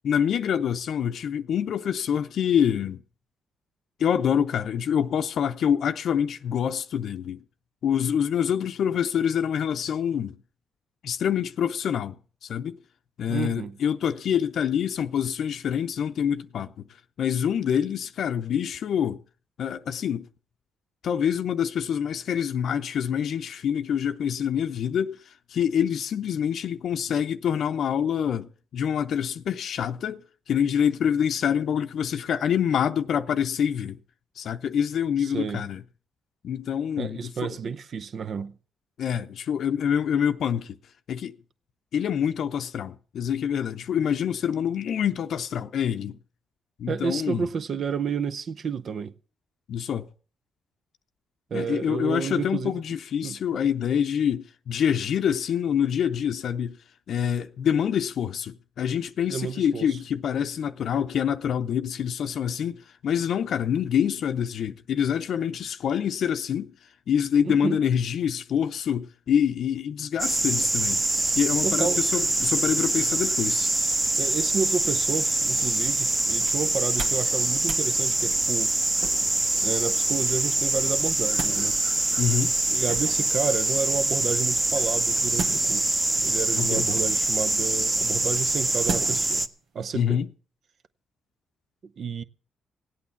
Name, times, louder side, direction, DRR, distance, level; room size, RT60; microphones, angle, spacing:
voice 1, 0.0-3.0 4.0-7.4 7.8-10.4 11.0-12.8 13.2-16.9 17.2-19.2 19.6-20.3 21.0-34.0 34.4-35.8 36.4-37.6 39.0-40.8 41.1-41.3 41.9-46.2 46.8-47.5 49.7-50.1 51.5-56.8 57.1-66.7 67.1-71.0 71.4-73.7 82.2-82.5 86.6-86.9 89.9-90.3, left 8 dB, 70° left, 0.6 m, -26 dB
voice 2, 13.3-13.8 35.2-35.7 37.0-38.5 46.9-49.1 51.5-52.8 53.2-53.4 59.3-60.0 67.5-67.8 71.6-72.0 74.2-78.7 79.6-81.8 82.7-89.4 89.7-90.2 92.0-92.2, right 6 dB, 55° right, 0.7 m, -31 dB
sound 1, 70.2-89.5, right 2 dB, 25° right, 1.2 m, -24 dB
sound 2, 77.0-77.3 77.6-77.9 79.0-79.5 80.9-81.6 82.8-83.3 85.3-86.0 86.7-87.2 88.9-89.3 89.8-89.9, right 5 dB, 75° right, 1.7 m, -35 dB
17.0 x 8.5 x 7.1 m
cardioid pair, 80°, 0 cm